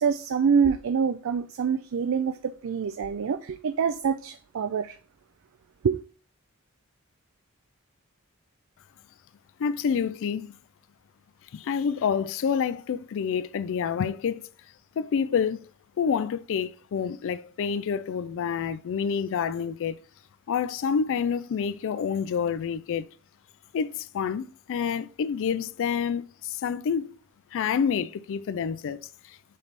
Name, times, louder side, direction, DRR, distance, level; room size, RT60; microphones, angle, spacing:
voice 1, 0.0-5.0 5.8-6.0, right 6 dB, 65° right, 0.4 m, -26 dB
voice 2, 9.6-10.6 11.5-14.5 15.0-15.7 16.0-20.0 20.5-23.1 23.7-27.2 27.5-29.4, left 7 dB, 60° left, 0.3 m, -28 dB
7.4 x 3.4 x 4.0 m
head